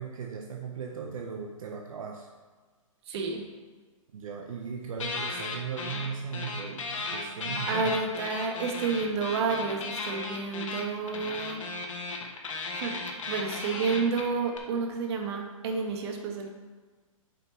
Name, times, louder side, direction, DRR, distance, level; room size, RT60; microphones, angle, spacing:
voice 1, 0.0-2.3 4.1-8.0, right 6 dB, 70° right, 2 dB, 0.8 m, -37 dB
voice 2, 3.1-3.4 7.7-11.6 12.8-13.0 13.3-16.5, right 4 dB, 50° right, 3 dB, 1.4 m, -30 dB
sound 1, 5.0-6.1 6.3-14.6, left 3 dB, 65° left, 1.4 m, -35 dB
8.5 x 5.2 x 4.0 m, 1.4 s
hypercardioid pair, 140°, 18 cm